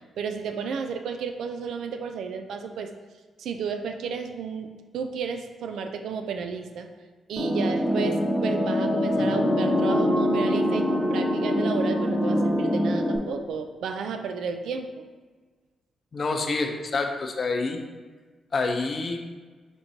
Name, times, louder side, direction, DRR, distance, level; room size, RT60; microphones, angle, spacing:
voice 1, 0.2-2.9 3.4-6.9 7.3-15.0, right 6 dB, 75° right, 6 dB, 0.3 m, -32 dB
sound 1, 7.4-13.2, equal, 5° left, 0.9 m, -24 dB
voice 2, 16.1-17.8 18.5-19.2, left 3 dB, 50° left, 4 dB, 0.6 m, -27 dB
4.3 x 3.6 x 2.7 m, 1.4 s
hypercardioid pair, 45°, 0 cm